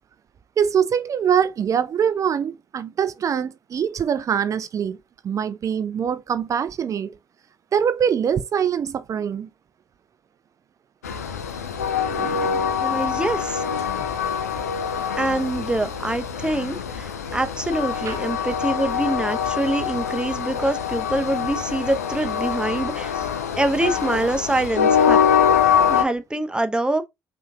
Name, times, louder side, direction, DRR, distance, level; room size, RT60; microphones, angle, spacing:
voice 1, 0.6-5.0 5.2-7.1 7.7-9.5 12.1-12.7 14.0-14.1 18.1-18.2, right 8 dB, 40° right, 0.4 m, -23 dB
Train, 11.0-26.0, left 7 dB, 80° left, 0.5 m, -24 dB
voice 2, 12.8-13.6 15.2-23.3 23.6-25.2 25.9-27.1, right 1 dB, 10° right, 0.8 m, -25 dB
5.5 x 2.8 x 2.3 m
figure-of-eight pair, 45°, 8 cm